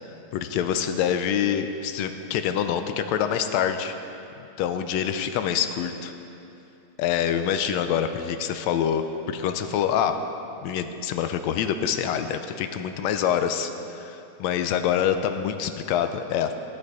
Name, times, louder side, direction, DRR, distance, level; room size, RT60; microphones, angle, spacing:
voice 1, 0.3-3.9 4.6-6.1 7.0-10.2 10.6-16.6, left 8 dB, 80° left, 8 dB, 1.7 m, -26 dB
14.0 x 11.0 x 4.8 m, 2.8 s
omnidirectional pair, 3.4 m